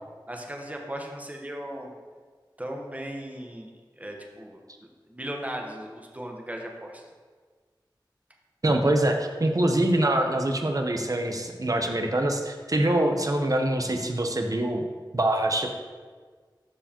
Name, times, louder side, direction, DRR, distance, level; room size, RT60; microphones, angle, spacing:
voice 1, 0.3-1.9 2.6-4.6 5.1-7.1, equal, 20° right, 1 dB, 1.1 m, -37 dB
voice 2, 8.6-14.8 15.1-15.7, right 1 dB, 45° right, 4 dB, 0.8 m, -24 dB
12.5 x 4.7 x 2.9 m, 1.5 s
wide cardioid pair, 60°, 8 cm